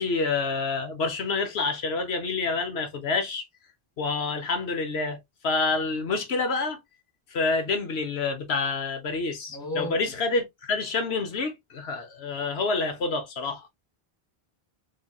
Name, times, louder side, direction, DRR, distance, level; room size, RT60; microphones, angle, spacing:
voice 1, 0.0-3.4 4.0-5.2 5.4-6.8 7.3-13.7, left 4 dB, 90° left, 1.2 m, -28 dB
voice 2, 9.5-10.1, left 2 dB, 5° left, 2.2 m, -34 dB
4.0 x 3.3 x 2.3 m
omnidirectional pair, 1.0 m